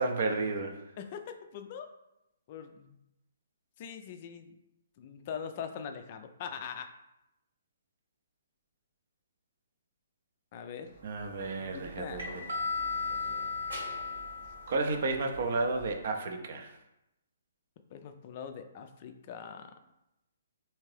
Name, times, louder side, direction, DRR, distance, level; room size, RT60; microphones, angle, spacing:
voice 1, 0.0-0.8 11.0-12.4 14.7-16.7, right 3 dB, 50° right, 4 dB, 0.5 m, -32 dB
voice 2, 1.0-1.9 2.5-2.9 3.8-4.5 5.0-6.9 10.5-10.9 11.6-12.3 17.9-19.7, left 7 dB, 40° left, 7 dB, 0.3 m, -42 dB
sound 1, 11.1-15.9, left 3 dB, 70° right, 1.2 m, -37 dB
3.5 x 2.8 x 3.1 m, 0.88 s
figure-of-eight pair, 130°, 0 cm